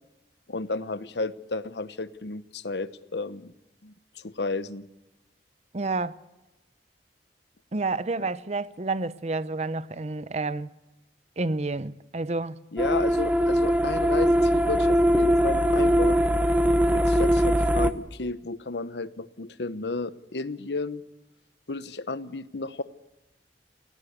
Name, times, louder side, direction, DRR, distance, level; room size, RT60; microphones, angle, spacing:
voice 1, 0.5-3.5 3.8-4.8 8.2-8.3 12.7-16.2 16.9-21.0 21.7-22.8, left 3 dB, 75° left, 1.0 m, -33 dB
voice 2, 5.7-6.2 7.7-10.7 11.4-12.6, right 3 dB, 40° right, 0.7 m, -29 dB
sound 1, 12.8-17.9, equal, 10° right, 0.8 m, -21 dB
19.0 x 17.0 x 8.2 m
head